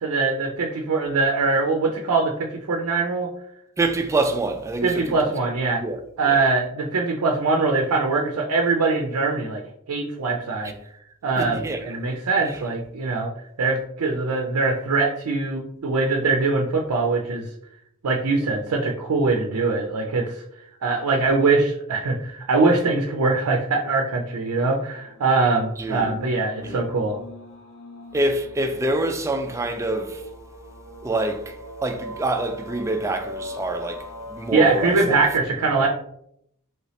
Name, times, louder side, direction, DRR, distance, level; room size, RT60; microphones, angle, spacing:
voice 1, 0.0-3.3 4.8-5.8 6.2-9.6 9.9-10.7 11.2-13.3 13.6-17.5 18.0-20.4 20.8-27.2 34.5-35.9, right 3 dB, 85° right, 0.5 m, -22 dB
voice 2, 3.8-5.1 5.8-6.0 6.3-6.4 11.4-11.8 25.8-26.1 26.6-26.8 28.1-30.2 31.0-31.5 31.8-35.2 35.8-35.9, right 2 dB, 15° right, 0.3 m, -26 dB
sound 1, 24.9-35.2, left 1 dB, 70° left, 0.6 m, -40 dB
3.2 x 3.0 x 2.7 m
head